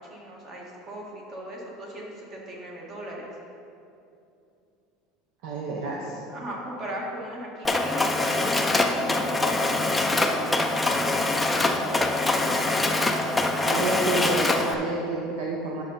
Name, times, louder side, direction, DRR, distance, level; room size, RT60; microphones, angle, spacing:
voice 1, 0.1-3.3 6.3-9.8 12.8-13.3, right 1 dB, 30° right, -2 dB, 1.6 m, -38 dB
voice 2, 5.4-6.2 12.2-13.0 13.5-15.8, right 2 dB, 60° right, -1 dB, 0.9 m, -30 dB
Mechanisms, 7.6-14.7, left 2 dB, 5° left, 0.4 m, -24 dB
9.6 x 6.6 x 4.0 m, 2.7 s
cardioid pair, 170°, 0 cm